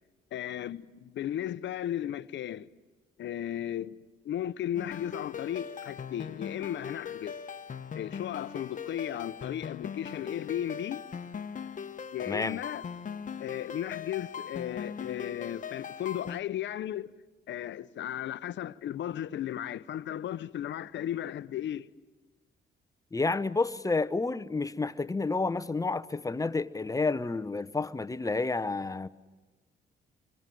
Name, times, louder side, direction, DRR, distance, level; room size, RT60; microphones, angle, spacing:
voice 1, 0.3-2.7 3.2-3.9 4.2-7.4 7.9-11.0 12.1-12.8 13.4-17.1 17.5-21.9, left 11 dB, 65° left, 0.8 m, -35 dB
sound 1, 4.8-16.4, left 7 dB, 40° left, 1.1 m, -40 dB
voice 2, 12.3-12.6 23.1-29.1, left 3 dB, 15° left, 0.8 m, -30 dB
26.5 x 24.0 x 7.8 m
cardioid pair, 90°, 20 cm